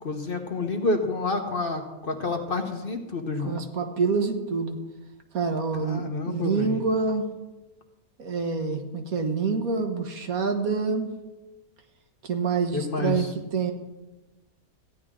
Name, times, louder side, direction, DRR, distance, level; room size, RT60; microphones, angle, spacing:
voice 1, 0.0-3.5 5.8-6.7 12.7-13.3, left 3 dB, 40° left, 4 dB, 1.1 m, -29 dB
voice 2, 3.4-4.8 5.3-7.3 8.2-11.1 12.2-13.7, right 4 dB, 70° right, 4 dB, 1.7 m, -27 dB
15.0 x 10.5 x 3.7 m, 1.1 s
omnidirectional pair, 1.6 m